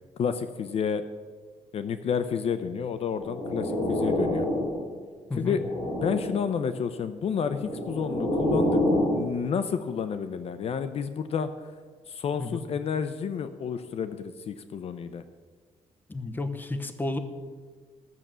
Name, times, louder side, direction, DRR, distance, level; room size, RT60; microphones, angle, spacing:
voice 1, 0.2-1.0 1.7-4.5 5.4-5.6 6.0-8.8 9.1-11.5 12.1-15.2, left 7 dB, 55° left, 10 dB, 0.6 m, -30 dB
sound 1, 3.1-4.9 5.3-6.5 7.3-9.2, left 1 dB, 80° left, 3.6 m, -27 dB
voice 2, 16.1-17.2, left 2 dB, 15° left, 7 dB, 0.9 m, -32 dB
13.5 x 6.7 x 7.5 m, 1.5 s
cardioid pair, 145°, 12 cm